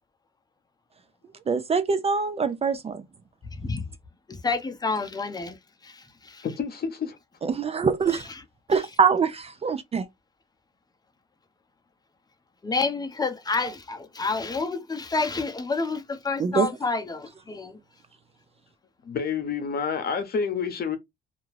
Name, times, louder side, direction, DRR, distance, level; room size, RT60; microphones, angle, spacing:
voice 1, 1.5-3.0 7.4-8.2 8.7-10.1 16.4-16.7, right 5 dB, 30° right, 0.4 m, -24 dB
voice 2, 3.5-3.8 4.3-5.6 5.8-6.5 12.6-17.8, left 4 dB, 20° left, 0.7 m, -29 dB
voice 3, 6.4-7.2 19.0-21.0, left 6 dB, 50° left, 0.8 m, -28 dB
2.5 x 2.2 x 3.2 m
cardioid pair, 90°, 20 cm